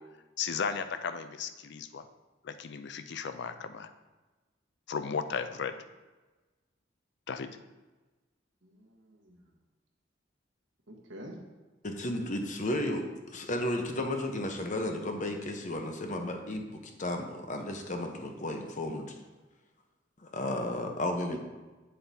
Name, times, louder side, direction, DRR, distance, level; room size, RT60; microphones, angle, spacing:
voice 1, 0.4-2.0 2.4-3.9 4.9-5.8 7.3-7.6, left 6 dB, 60° left, 10 dB, 0.4 m, -35 dB
voice 2, 8.6-9.4 10.9-11.4 12.9-13.0 21.3-21.4, right 1 dB, 85° right, 0 dB, 1.4 m, -45 dB
voice 3, 11.8-13.0 13.3-19.1 20.2-21.4, left 1 dB, 40° left, 4 dB, 0.9 m, -33 dB
8.1 x 7.8 x 2.8 m, 1.2 s
head